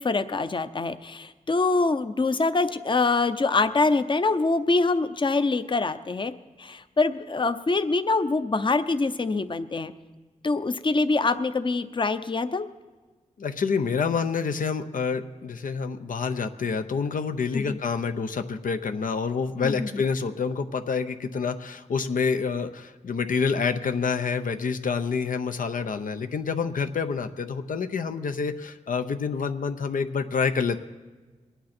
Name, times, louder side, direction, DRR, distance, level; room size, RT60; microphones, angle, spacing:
voice 1, 0.0-6.3 6.6-9.9 10.4-12.7 17.5-17.8 19.6-19.9, left 3 dB, 35° left, 11 dB, 0.7 m, -24 dB
voice 2, 13.4-30.8, left 5 dB, 80° left, 8 dB, 0.7 m, -27 dB
22.5 x 9.2 x 4.3 m, 1.3 s
cardioid pair, 60°, 14 cm